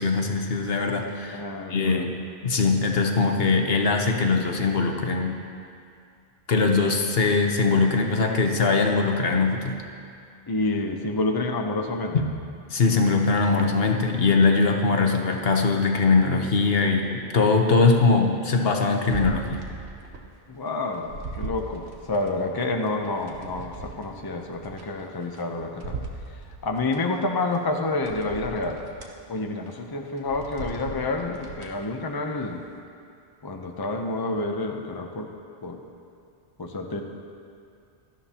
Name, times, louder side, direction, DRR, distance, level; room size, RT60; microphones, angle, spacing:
voice 1, 0.0-1.4 1.7-2.1 2.4-5.4 6.5-9.7 12.1-12.2 12.7-19.6, left 4 dB, 70° left, 3 dB, 1.2 m, -21 dB
voice 2, 1.3-2.1 10.5-12.2 20.5-21.1 21.4-26.0 26.6-28.8 29.3-32.6 33.4-35.3 35.6-35.8 36.6-37.0, left 2 dB, 25° left, 3 dB, 0.7 m, -28 dB
sound 1, 19.1-20.3 20.7-22.3 22.8-25.4 25.8-27.0 27.5-27.6 28.0-29.1 29.6-29.8 30.2-31.8 32.3-32.4, right 3 dB, 90° right, 1.4 m, -38 dB
18.0 x 13.0 x 2.9 m, 2.4 s
omnidirectional pair, 1.1 m